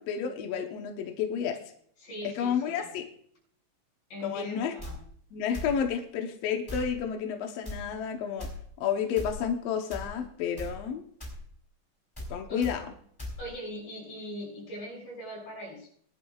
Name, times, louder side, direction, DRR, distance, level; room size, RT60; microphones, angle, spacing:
voice 1, 0.0-1.6 2.4-3.1 4.2-4.7 5.3-8.5 8.8-11.0 12.3-12.8, left 7 dB, 70° left, 4 dB, 1.5 m, -31 dB
voice 2, 2.0-2.9 4.1-5.0 12.5-12.7 13.4-15.9, equal, 40° left, -1 dB, 7.1 m, -40 dB
sound 1, 4.8-4.9 5.5-5.8 6.7-6.9 7.6-7.8 8.4-8.5 9.2-9.4 9.9-10.1 10.6-10.7 11.2-11.4 12.2-12.3 12.6-12.7 13.2-13.4, left 1 dB, 5° left, 2.8 m, -37 dB
21.5 x 11.0 x 2.4 m, 0.65 s
omnidirectional pair, 4.1 m